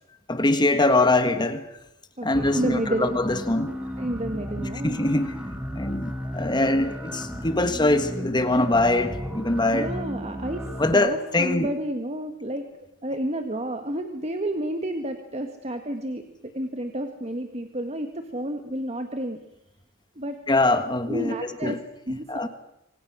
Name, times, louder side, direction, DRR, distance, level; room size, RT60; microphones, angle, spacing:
voice 1, 0.3-1.7 2.2-3.7 4.6-5.3 5.7-9.9 10.8-11.7 20.5-21.3 21.6-21.8 22.3-22.5, left 2 dB, 20° left, 1.6 m, -23 dB
voice 2, 2.2-3.1 3.6-5.0 9.7-10.7 10.9-12.7 13.0-19.4 20.2-20.4 21.1-21.8 22.1-22.5, right 1 dB, 30° right, 1.7 m, -30 dB
sound 1, 2.3-10.9, equal, 5° right, 3.6 m, -34 dB
27.5 x 25.5 x 6.3 m
head